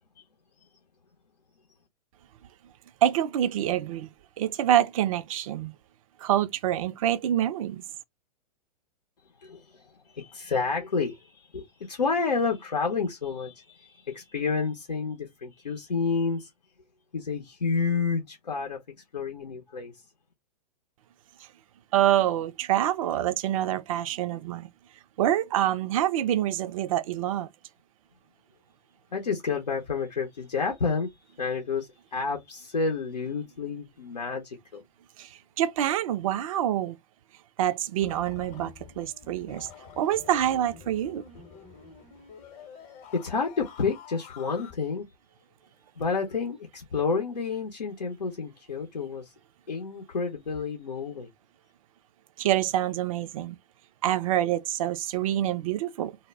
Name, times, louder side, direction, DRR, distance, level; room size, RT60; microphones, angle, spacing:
voice 1, 3.0-4.1 4.4-5.7 6.2-7.8 21.9-24.7 25.2-27.5 35.2-37.0 37.6-39.7 40.0-41.2 52.4-53.6 54.0-56.2, right 12 dB, 55° right, 0.4 m, -26 dB
voice 2, 9.4-16.7 17.1-18.8 19.1-19.9 29.1-31.1 31.4-34.8 43.1-45.0 46.0-49.3 49.7-51.3, left 5 dB, 85° left, 0.7 m, -30 dB
sound 1, 38.0-44.7, left 6 dB, 35° left, 0.8 m, -48 dB
2.0 x 2.0 x 3.3 m
figure-of-eight pair, 110°, 21 cm